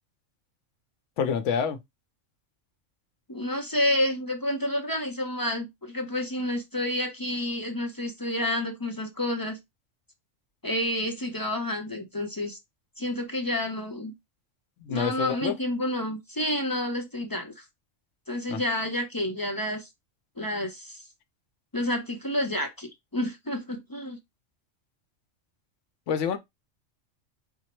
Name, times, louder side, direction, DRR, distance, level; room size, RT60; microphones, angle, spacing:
voice 1, 1.2-1.8 14.8-15.6 18.5-18.6 26.1-26.4, left 6 dB, 70° left, 1.0 m, -27 dB
voice 2, 3.3-9.6 10.6-12.6 13.0-14.1 14.9-17.6 18.3-19.9 20.4-21.0 21.7-24.2, left 1 dB, 25° left, 0.5 m, -29 dB
5.5 x 2.0 x 4.3 m
omnidirectional pair, 1.3 m